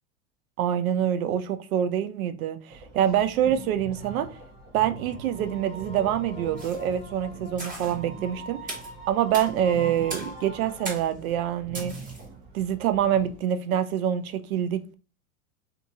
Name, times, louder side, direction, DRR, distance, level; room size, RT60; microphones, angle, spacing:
voice 1, 0.6-4.3 4.7-8.6 9.1-11.9 12.5-14.9, right 10 dB, 80° right, 0.5 m, -26 dB
sound 1, 2.7-13.4, right 4 dB, 40° right, 0.8 m, -44 dB
sound 2, 4.0-10.9, equal, 15° left, 1.1 m, -43 dB
sound 3, 6.6-6.9 7.6-8.0 8.7-8.9 9.3-9.5 10.1-10.4 10.8-11.2 11.7-12.2, right 2 dB, 20° right, 1.3 m, -37 dB
2.6 x 2.6 x 2.7 m
hypercardioid pair, 110°, 41 cm